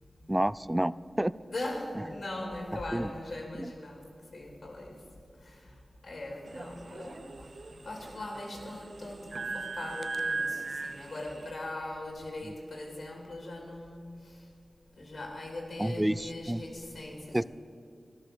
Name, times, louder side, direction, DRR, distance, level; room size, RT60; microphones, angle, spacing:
voice 1, 0.3-1.3 2.9-3.1 3.6-3.7 12.4-12.5 15.8-16.6 17.3-17.4, right 1 dB, 15° right, 19 dB, 0.3 m, -29 dB
voice 2, 1.5-5.0 5.4-5.8 6.0-7.2 7.7-14.4 15.0-17.5, left 1 dB, 75° left, 1 dB, 2.7 m, -40 dB
sound 1, 6.5-11.5, right 3 dB, 65° right, 0.6 m, -38 dB
13.5 x 11.0 x 6.8 m, 2.4 s
wide cardioid pair, 60°, 0 cm